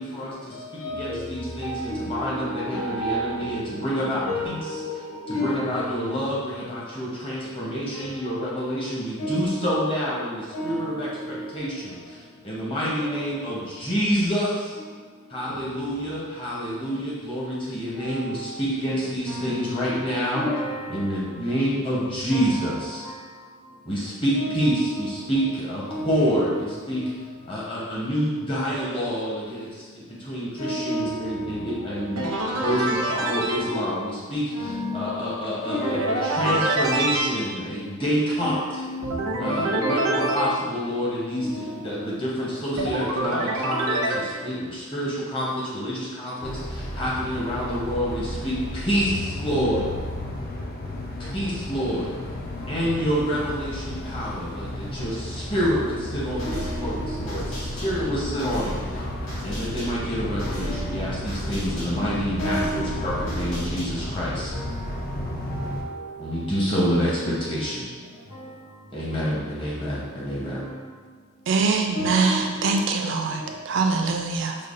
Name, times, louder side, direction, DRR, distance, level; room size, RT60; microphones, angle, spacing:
voice 1, 0.0-4.6 5.3-14.7 15.3-20.4 20.9-23.0 23.9-27.0 27.5-32.2 32.6-34.7 34.9-38.6 39.4-49.9 51.2-52.1 52.7-58.7 59.4-64.5 66.2-67.9 68.9-70.6, equal, 25° left, 0.8 m, -27 dB
voice 2, 0.5-5.8 8.0-8.1 9.2-10.1 10.5-11.5 13.0-13.6 14.8-14.9 15.5-15.6 16.7-16.8 18.0-18.5 19.3-19.7 20.3-21.2 22.3-23.3 24.4-25.5 25.9-27.1 28.6-29.1 30.6-32.8 33.3-33.9 34.5-35.4 35.6-36.7 38.4-39.6 39.8-40.7 41.4-42.1 44.3-44.4 56.4-57.3 58.0-58.3 60.6-61.0 62.4-63.7 64.0-64.1 64.5-64.9 65.5-66.3 67.0-67.4 68.3-68.5 70.7-70.8 71.9-72.9 73.4-73.7, equal, 85° left, 0.9 m, -33 dB
sound 1, 32.2-33.6 35.8-37.2 39.0-40.5 42.8-44.2, right 2 dB, 90° right, 0.6 m, -25 dB
sound 2, 46.4-65.8, left 1 dB, 40° left, 0.4 m, -33 dB
sound 3, 56.4-64.3, equal, 60° left, 1.4 m, -37 dB
voice 3, 71.5-74.6, right 4 dB, 55° right, 0.3 m, -23 dB
5.2 x 2.2 x 2.5 m
head